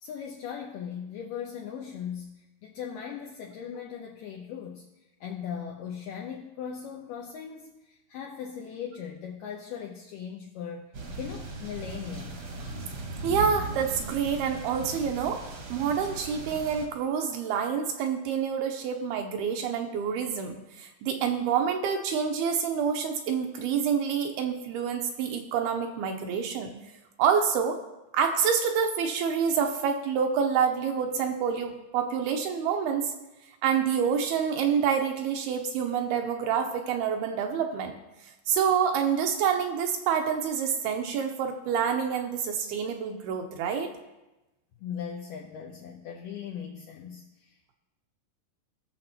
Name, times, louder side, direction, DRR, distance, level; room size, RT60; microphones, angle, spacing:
voice 1, 0.0-2.3 2.6-4.9 5.2-10.8 11.1-12.4 44.8-47.7, left 8 dB, 85° left, 0 dB, 1.9 m, -39 dB
sound 1, 10.9-16.9, right 3 dB, 60° right, 1.6 m, -38 dB
voice 2, 13.2-15.4 15.7-26.7 27.2-27.8 28.1-33.1 33.6-38.0 38.5-43.9, right 7 dB, 80° right, 4 dB, 2.5 m, -27 dB
19.5 x 6.7 x 2.9 m, 1.0 s
omnidirectional pair, 4.8 m